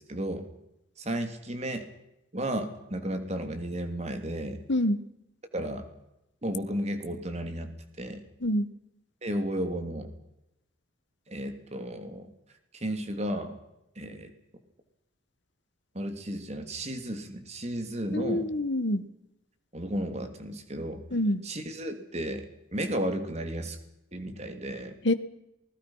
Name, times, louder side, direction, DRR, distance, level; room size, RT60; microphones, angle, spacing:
voice 1, 0.1-0.5 1.0-1.8 2.3-4.6 5.5-5.9 6.4-8.2 9.2-10.1 11.3-12.3 12.7-13.6 13.9-14.3 15.9-18.5 19.7-21.0 21.4-23.8 24.1-25.0, right 1 dB, 30° right, 6 dB, 3.1 m, -33 dB
voice 2, 18.1-19.0 21.1-21.4 25.0-25.1, left 1 dB, 60° left, 10 dB, 1.6 m, -26 dB
27.5 x 20.5 x 5.8 m, 0.88 s
head